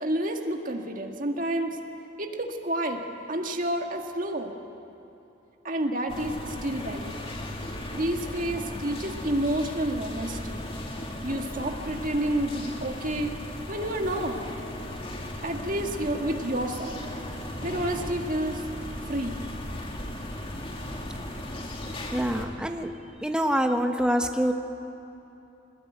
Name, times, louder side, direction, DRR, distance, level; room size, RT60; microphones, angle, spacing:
voice 1, 0.0-1.8 2.2-3.0 3.3-4.5 5.6-7.2 7.9-10.6 11.2-13.3 13.7-14.4 15.4-17.0 17.6-18.6 19.1-19.4, right 1 dB, 45° right, 3 dB, 1.9 m, -29 dB
sound 1, 6.1-22.5, left 1 dB, 30° left, 2.2 m, -36 dB
voice 2, 22.1-22.9 23.2-24.5, equal, 5° right, 5 dB, 1.0 m, -25 dB
22.0 x 20.0 x 9.1 m, 2.9 s
head